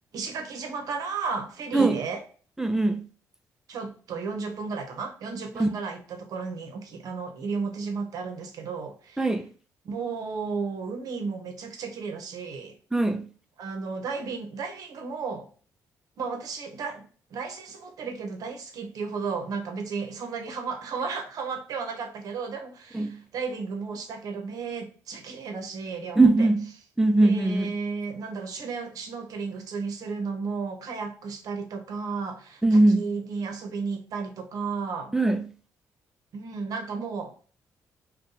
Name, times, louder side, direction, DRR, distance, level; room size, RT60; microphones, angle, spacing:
voice 1, 0.1-2.2 3.7-9.3 9.8-12.8 13.6-15.5 16.2-17.1 17.3-26.5 27.2-35.1 36.3-37.3, right 4 dB, 70° right, 0.8 m, -33 dB
voice 2, 2.6-3.0 5.6-5.7 9.2-9.5 12.9-13.3 22.9-23.2 26.2-26.7 27.0-27.7 32.6-33.1 35.1-35.4, right 2 dB, 5° right, 0.4 m, -21 dB
2.6 x 2.2 x 3.8 m
cardioid pair, 75°, 7 cm